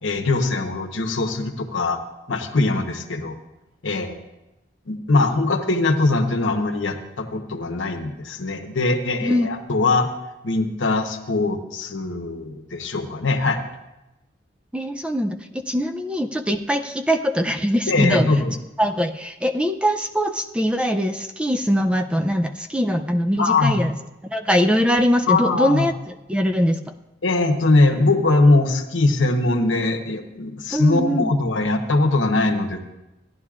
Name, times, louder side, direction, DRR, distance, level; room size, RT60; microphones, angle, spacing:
voice 1, 0.0-2.0 2.3-3.3 3.8-4.2 4.9-10.1 10.4-13.6 17.9-18.5 23.4-23.8 25.3-25.9 27.2-32.9, left 2 dB, 90° left, 5 dB, 1.0 m, -21 dB
voice 2, 14.7-18.4 18.8-24.0 24.2-26.8 30.7-31.3, equal, 5° right, 6 dB, 0.4 m, -22 dB
16.0 x 11.0 x 2.4 m, 0.97 s
head